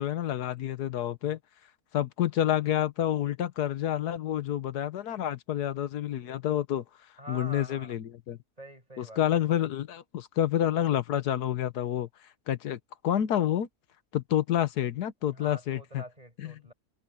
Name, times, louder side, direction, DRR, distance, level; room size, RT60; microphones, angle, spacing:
voice 1, 0.0-1.4 1.9-6.8 7.3-8.4 9.0-12.1 12.5-13.7 14.1-16.0 16.4-16.5, left 11 dB, 85° left, 1.5 m, -28 dB
voice 2, 7.2-8.0 8.6-9.6 15.3-16.7, equal, 25° right, 7.4 m, -46 dB
omnidirectional pair, 1.6 m